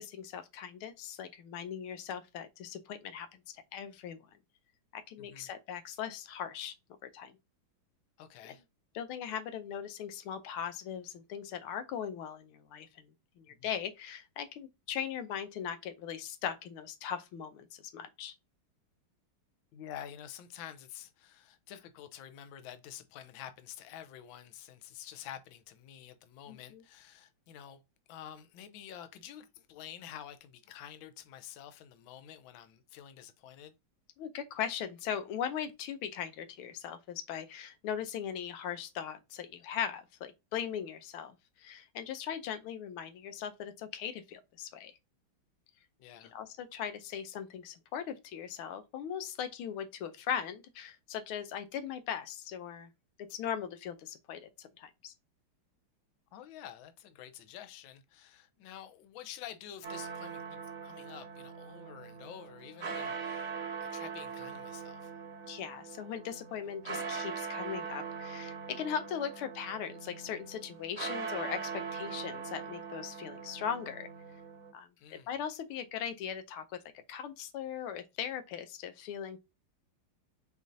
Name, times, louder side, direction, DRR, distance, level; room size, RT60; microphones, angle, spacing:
voice 1, 0.0-4.2 4.9-6.7 7.0-7.3 8.4-8.5 8.9-13.1 13.4-18.3 26.5-26.8 34.2-44.9 46.3-52.9 53.3-55.1 65.4-74.1 74.7-76.6 77.1-79.4, left 8 dB, 90° left, 1.6 m, -39 dB
voice 2, 5.2-5.5 8.2-8.6 13.5-13.7 19.7-27.8 28.1-33.7 46.0-46.3 56.3-63.5 63.8-65.1 75.0-75.3, left 10 dB, 75° left, 1.4 m, -49 dB
sound 1, 59.8-74.7, right 5 dB, 50° right, 1.0 m, -41 dB
5.1 x 3.9 x 2.6 m
omnidirectional pair, 2.3 m